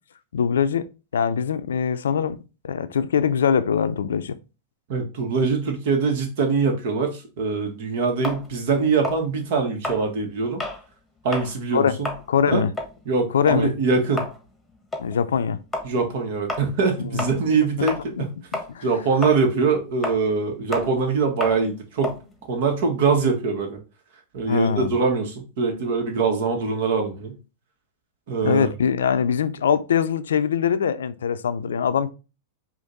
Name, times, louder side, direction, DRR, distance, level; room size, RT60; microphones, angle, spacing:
voice 1, 0.3-0.8 1.1-2.4 2.6-4.4 11.7-12.0 12.3-12.7 13.3-13.7 15.0-15.6 17.1-17.2 18.2-18.3 18.7-18.8 24.5-24.9 28.4-32.1, left 7 dB, 85° left, 0.4 m, -22 dB
voice 2, 4.9-10.6 11.2-12.1 12.5-12.6 13.0-14.2 15.8-18.3 18.8-22.2 22.5-23.8 24.3-27.3 28.3-28.7, right 4 dB, 65° right, 1.3 m, -23 dB
sound 1, 8.2-10.8 11.2-11.5 11.9-18.3 18.5-23.3, left 2 dB, 5° left, 1.2 m, -32 dB
5.1 x 2.5 x 3.9 m
hypercardioid pair, 110°, 0 cm